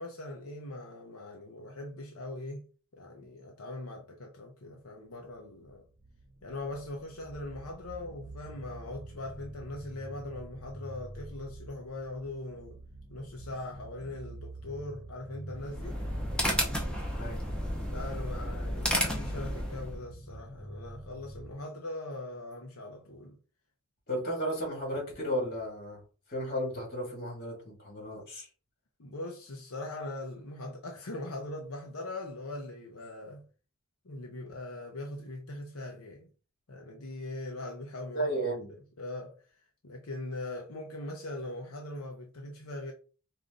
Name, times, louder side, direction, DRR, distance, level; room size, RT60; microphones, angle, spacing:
voice 1, 0.0-2.7 2.9-5.9 6.4-12.8 13.1-16.0 17.9-23.4 29.0-33.4 34.0-36.3 36.7-38.3 39.0-39.4 39.8-42.9, left 2 dB, 80° left, 0.8 m, -41 dB
sound 1, 5.3-21.5, right 1 dB, 25° right, 0.7 m, -47 dB
sound 2, 15.6-20.0, equal, 5° left, 0.9 m, -32 dB
voice 2, 24.1-26.0 26.3-28.5 38.1-38.7, equal, 45° left, 2.4 m, -34 dB
4.9 x 2.7 x 3.8 m
head